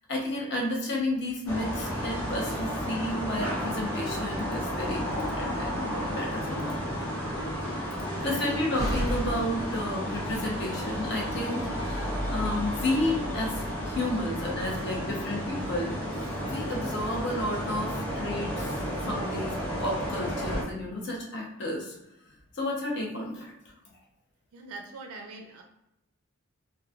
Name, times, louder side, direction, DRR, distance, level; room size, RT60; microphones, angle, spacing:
voice 1, 0.1-6.8 7.9-21.9 22.5-23.5, left 1 dB, 55° left, -2 dB, 0.7 m, -32 dB
sound 1, 1.5-20.6, equal, 90° left, 0.8 m, -32 dB
Slam, 4.8-10.4, equal, 20° right, 0.5 m, -38 dB
voice 2, 8.2-8.5 24.5-25.6, right 3 dB, 90° right, 1 dB, 0.4 m, -42 dB
3.0 x 2.2 x 2.4 m, 0.87 s
head